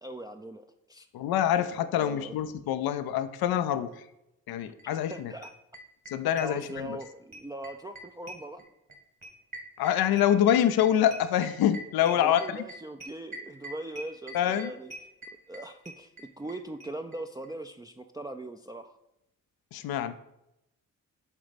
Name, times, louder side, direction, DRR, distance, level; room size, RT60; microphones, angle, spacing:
voice 1, 0.0-1.1 2.0-2.3 5.1-5.5 6.2-8.6 12.0-14.9 15.5-18.9, right 1 dB, 10° right, 4 dB, 0.4 m, -40 dB
voice 2, 1.1-4.0 4.5-5.3 6.1-7.0 9.8-12.6 14.3-14.7 19.7-20.2, left 10 dB, 80° left, 11 dB, 0.6 m, -26 dB
sound 1, 4.8-4.9 5.1-5.2 5.4-7.1 7.3-16.5 16.8-16.9 17.1-17.2 17.4-17.5, right 1 dB, 50° right, 2.1 m, -43 dB
7.4 x 4.0 x 5.1 m, 0.86 s
supercardioid pair, 55°, 36 cm